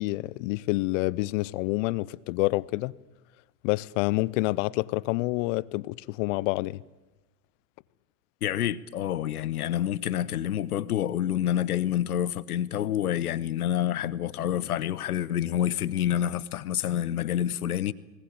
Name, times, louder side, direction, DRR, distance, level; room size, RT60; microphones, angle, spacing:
voice 1, 0.0-2.9 3.6-6.8, left 21 dB, 60° left, 0.7 m, -28 dB
voice 2, 8.4-17.9, left 11 dB, 90° left, 0.9 m, -28 dB
20.5 x 19.0 x 8.7 m
hypercardioid pair, 90°, 43 cm